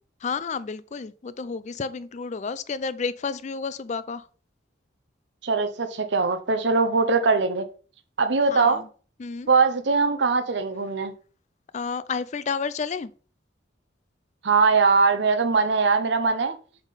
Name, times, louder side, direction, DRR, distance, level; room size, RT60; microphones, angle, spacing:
voice 1, 0.2-4.3 8.5-8.9 9.2-9.5 11.7-13.1, left 5 dB, 40° left, 0.4 m, -31 dB
voice 2, 5.4-7.7 8.2-8.8 9.5-11.1 14.4-16.6, right 4 dB, 65° right, 0.8 m, -21 dB
8.0 x 3.7 x 4.1 m
head